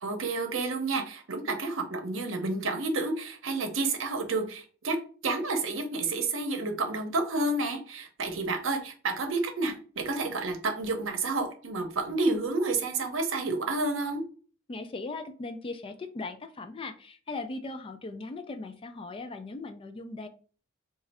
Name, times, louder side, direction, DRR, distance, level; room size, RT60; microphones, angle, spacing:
voice 1, 0.0-14.2, right 3 dB, 70° right, 6 dB, 0.7 m, -30 dB
voice 2, 14.7-20.3, left 3 dB, 25° left, 8 dB, 0.3 m, -38 dB
3.1 x 2.4 x 4.0 m, 0.40 s
head